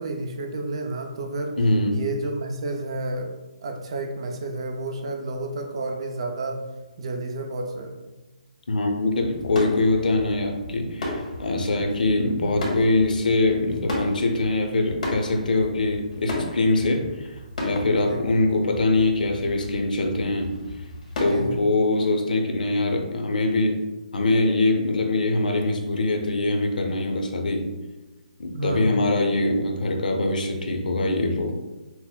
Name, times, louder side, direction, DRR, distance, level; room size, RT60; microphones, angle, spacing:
voice 1, 0.0-1.6 1.9-3.3 3.6-6.7 7.0-7.9 18.1-18.2 21.2-21.6 28.5-28.9, right 2 dB, 40° right, 4 dB, 0.4 m, -30 dB
voice 2, 1.6-2.0 8.7-20.5 21.2-23.8 24.1-27.7 28.4-31.6, left 2 dB, 80° left, 3 dB, 0.6 m, -23 dB
sound 1, 9.0-21.4, left 1 dB, 60° left, 1.4 m, -35 dB
5.7 x 2.0 x 2.2 m, 1.1 s
hypercardioid pair, 175°, 5 cm